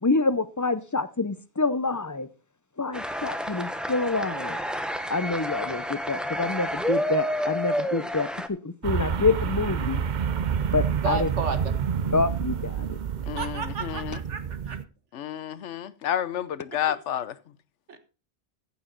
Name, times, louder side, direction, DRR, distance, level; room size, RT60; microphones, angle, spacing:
voice 1, 0.0-2.3 2.8-4.6 5.1-10.0 10.7-11.3 12.1-13.0, left 3 dB, 20° left, 0.5 m, -27 dB
sound 1, 2.9-8.5, equal, ahead, 0.9 m, -29 dB
sound 2, 8.8-14.8, right 7 dB, 50° right, 0.7 m, -28 dB
voice 2, 11.0-11.6 13.4-14.8 17.9-18.0, right 5 dB, 90° right, 1.8 m, -32 dB
voice 3, 13.3-14.2 15.1-17.4, left 10 dB, 90° left, 1.1 m, -30 dB
15.0 x 7.2 x 3.9 m
omnidirectional pair, 1.2 m